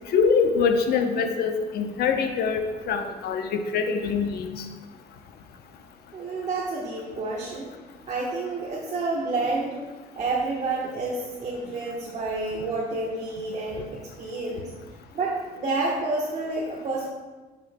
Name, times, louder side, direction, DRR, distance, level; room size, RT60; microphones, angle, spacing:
voice 1, 0.1-2.6 2.9-4.7, left 5 dB, 70° left, 6 dB, 0.8 m, -24 dB
voice 2, 6.1-7.7 8.1-9.8 10.1-13.9 14.2-14.7 15.1-17.1, right 3 dB, 40° right, -4 dB, 1.2 m, -29 dB
9.9 x 6.1 x 2.2 m, 1.3 s
cardioid pair, 110°, 17 cm